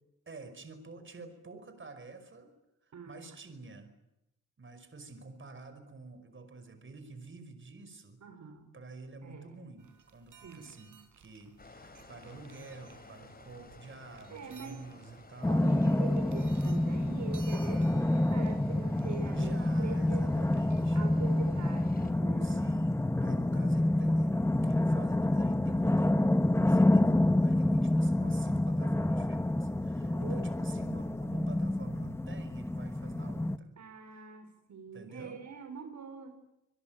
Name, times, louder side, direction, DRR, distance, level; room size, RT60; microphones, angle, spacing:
voice 1, 0.3-2.5 2.8-3.9 4.6-8.2 8.7-15.8 19.3-21.0 21.4-22.0 22.4-26.3 26.6-33.7 34.9-35.4, right 3 dB, 40° right, 10 dB, 5.2 m, -49 dB
voice 2, 8.2-8.7 9.2-9.6 10.4-10.7 14.3-14.8 15.5-20.3 20.9-22.6 30.0-30.5 33.8-36.3, right 5 dB, 65° right, 7 dB, 4.3 m, -44 dB
sound 1, 9.8-21.2, right 6 dB, 80° right, 4.4 m, -59 dB
sound 2, 11.6-22.1, left 3 dB, 30° left, 4.3 m, -53 dB
sound 3, 15.4-33.6, left 1 dB, 10° left, 1.0 m, -28 dB
26.5 x 21.5 x 9.2 m, 0.88 s
cardioid pair, 90°, 31 cm